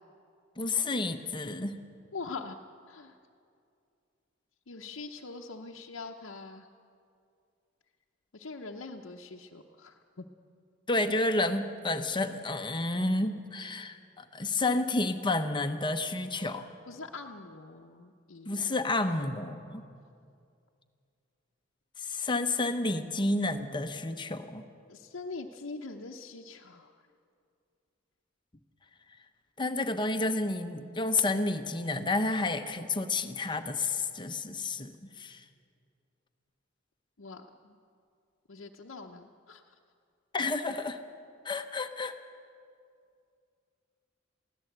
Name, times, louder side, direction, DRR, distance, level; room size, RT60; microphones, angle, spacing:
voice 1, 0.6-1.8 10.9-16.7 18.5-19.8 22.0-24.6 29.6-35.4 40.3-41.0 41.4-42.1, left 2 dB, 25° left, 8 dB, 0.9 m, -30 dB
voice 2, 2.1-2.6 2.9-3.2 4.7-6.7 8.3-10.3 16.9-18.7 19.1-19.2 24.9-27.0 37.2-37.8 38.5-39.7, left 3 dB, 75° left, -1 dB, 0.8 m, -43 dB
22.5 x 16.5 x 8.0 m, 2.4 s
head